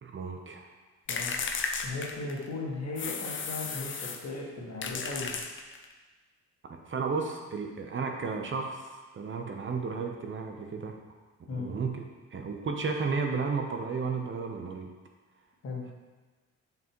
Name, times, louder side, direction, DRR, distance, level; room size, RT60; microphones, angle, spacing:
voice 1, 0.0-0.7 6.8-11.0 11.5-12.0 12.3-14.9, right 4 dB, 40° right, 2 dB, 0.9 m, -33 dB
voice 2, 1.1-5.4 11.5-11.7 15.6-15.8, left 3 dB, 55° left, -3 dB, 1.8 m, -37 dB
sound 1, 1.1-2.5 3.0-4.3 4.8-5.9, left 5 dB, 40° left, 0.6 m, -34 dB
7.0 x 5.8 x 3.1 m, 1.3 s
cardioid pair, 90°, 30 cm